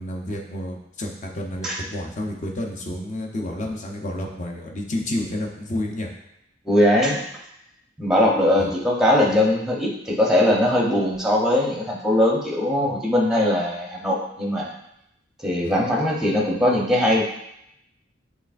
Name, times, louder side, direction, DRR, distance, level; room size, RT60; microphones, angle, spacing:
voice 1, 0.0-6.1 8.6-8.7 15.6-15.8, left 1 dB, 40° left, 0 dB, 0.7 m, -30 dB
voice 2, 6.7-7.2 8.0-14.7 15.4-17.2, left 1 dB, 5° right, -2 dB, 0.7 m, -20 dB
6.4 x 3.2 x 2.5 m, 0.79 s
head